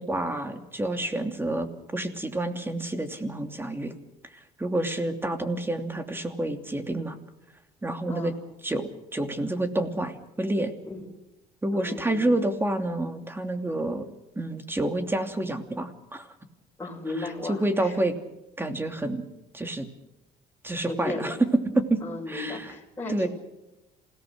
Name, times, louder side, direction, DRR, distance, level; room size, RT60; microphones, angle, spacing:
voice 1, 0.0-1.7 1.9-3.9 4.6-7.1 7.8-8.3 8.6-10.7 11.6-14.0 14.4-16.3 17.2-18.2 18.6-19.2 19.5-19.9 20.6-21.5 21.8-22.0 22.3-22.7 23.1-23.3, right 1 dB, 15° right, 7 dB, 2.8 m, -28 dB
voice 2, 4.7-5.0 8.1-8.4 10.8-11.1 11.7-12.3 16.8-18.0 20.7-21.3 22.0-23.3, left 2 dB, 10° left, -5 dB, 7.0 m, -36 dB
27.5 x 18.0 x 6.6 m, 0.91 s
cardioid pair, 110°, 17 cm